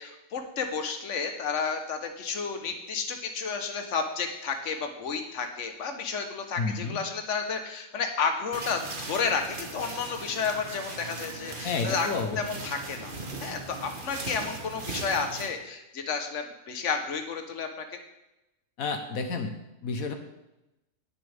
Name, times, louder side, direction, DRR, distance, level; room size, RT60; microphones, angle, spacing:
voice 1, 0.0-12.1 12.4-13.1 13.4-17.8, left 5 dB, 60° left, 5 dB, 1.5 m, -31 dB
voice 2, 6.6-7.0 11.6-12.4 18.8-20.1, left 4 dB, 90° left, 6 dB, 1.6 m, -31 dB
sound 1, 8.5-15.5, right 3 dB, 40° right, 1.4 m, -39 dB
19.5 x 7.0 x 3.5 m, 0.93 s
omnidirectional pair, 1.4 m